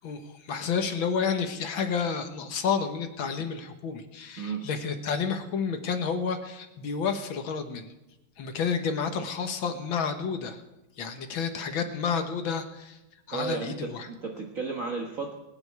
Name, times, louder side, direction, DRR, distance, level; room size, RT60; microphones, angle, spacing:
voice 1, 0.0-7.9 8.4-10.6 11.0-13.0 13.3-14.1, left 6 dB, 75° left, 7 dB, 2.1 m, -30 dB
voice 2, 4.4-4.7 13.3-15.3, right 4 dB, 45° right, 1 dB, 1.7 m, -33 dB
22.0 x 9.8 x 4.7 m, 0.97 s
omnidirectional pair, 2.2 m